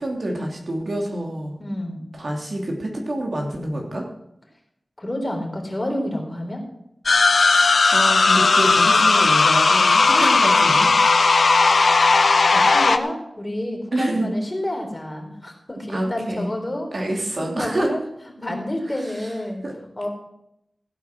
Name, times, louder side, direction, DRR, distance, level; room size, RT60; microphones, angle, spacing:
voice 1, 0.0-1.6 2.1-4.0 7.5-11.2 13.9-14.3 15.9-16.5 16.9-17.9 19.6-19.7, right 1 dB, 60° right, 0 dB, 3.3 m, -27 dB
voice 2, 1.6-2.0 5.0-6.6 10.1-10.5 12.0-16.9 17.4-18.0 18.4-19.6 20.0-20.1, left 1 dB, 25° left, 2 dB, 3.7 m, -29 dB
sound 1, 7.1-13.0, left 4 dB, 80° left, 0.7 m, -16 dB
15.5 x 9.0 x 6.3 m, 0.80 s
wide cardioid pair, 85°, 0 cm